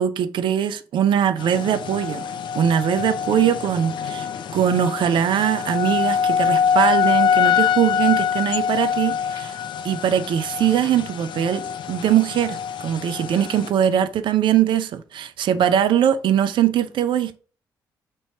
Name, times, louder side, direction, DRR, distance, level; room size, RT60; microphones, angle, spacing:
voice 1, 0.0-2.2 2.6-9.6 9.8-17.4, right 9 dB, 55° right, 0.4 m, -21 dB
sound 1, 1.4-13.7, left 7 dB, 55° left, 0.4 m, -24 dB
3.0 x 2.7 x 4.2 m
hypercardioid pair, 45°, 10 cm